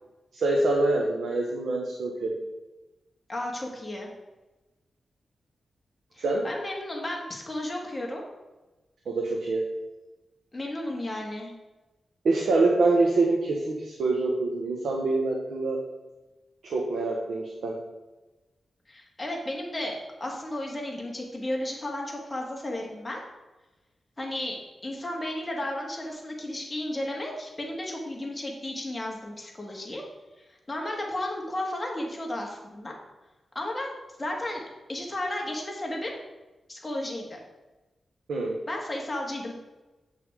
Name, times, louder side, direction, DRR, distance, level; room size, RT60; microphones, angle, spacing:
voice 1, 0.3-2.4 6.2-6.5 9.1-9.7 12.2-15.8 16.6-17.8 38.3-38.6, right 2 dB, 85° right, -1 dB, 1.3 m, -25 dB
voice 2, 3.3-4.1 6.2-8.2 10.5-11.5 18.9-23.2 24.2-30.0 30.7-32.9 33.6-33.9 34.2-34.6 34.9-36.2 36.7-37.4 38.7-39.5, left 1 dB, 20° left, -1 dB, 1.9 m, -33 dB
8.1 x 5.8 x 4.8 m, 1.1 s
wide cardioid pair, 110°, 0 cm